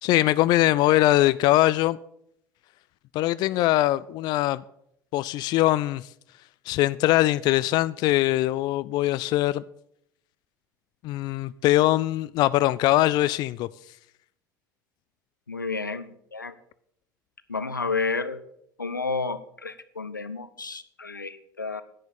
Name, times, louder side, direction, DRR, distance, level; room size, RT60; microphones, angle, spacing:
voice 1, 0.0-2.0 3.1-4.6 5.1-6.1 6.7-9.6 11.0-13.7, left 16 dB, 45° left, 0.3 m, -22 dB
voice 2, 15.5-16.5 17.5-18.4 18.8-21.8, left 4 dB, 85° left, 0.6 m, -31 dB
10.5 x 7.7 x 6.9 m
figure-of-eight pair, 65°, 10 cm